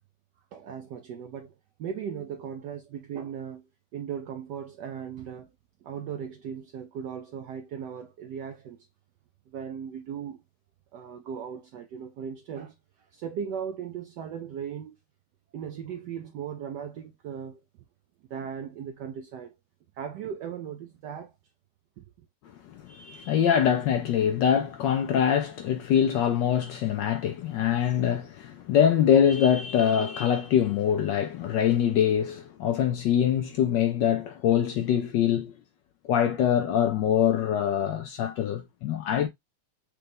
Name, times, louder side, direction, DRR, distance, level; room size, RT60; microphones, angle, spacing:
voice 1, 0.5-3.7 3.9-5.5 5.8-8.9 9.5-10.4 10.9-15.0 15.5-17.6 18.3-19.6 19.9-21.3 22.0-22.3, right 8 dB, 75° right, 1.0 m, -37 dB
voice 2, 22.7-35.5 36.1-39.3, left 9 dB, 75° left, 1.1 m, -24 dB
6.7 x 2.3 x 3.4 m
omnidirectional pair, 2.3 m